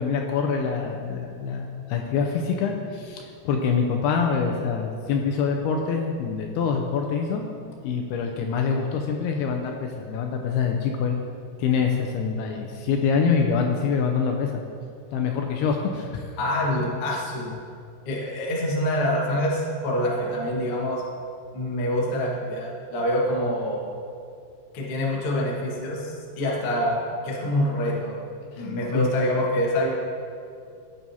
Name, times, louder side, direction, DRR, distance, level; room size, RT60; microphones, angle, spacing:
voice 1, 0.0-7.4 7.8-11.2 11.6-14.6 15.1-16.3 28.5-29.1, left 6 dB, 80° left, 2 dB, 2.4 m, -25 dB
voice 2, 16.4-17.5 18.0-21.0 21.5-23.8 24.7-26.9 27.2-28.2 28.6-30.0, equal, 60° left, -4 dB, 1.5 m, -26 dB
16.0 x 6.1 x 2.8 m, 2.3 s
omnidirectional pair, 4.8 m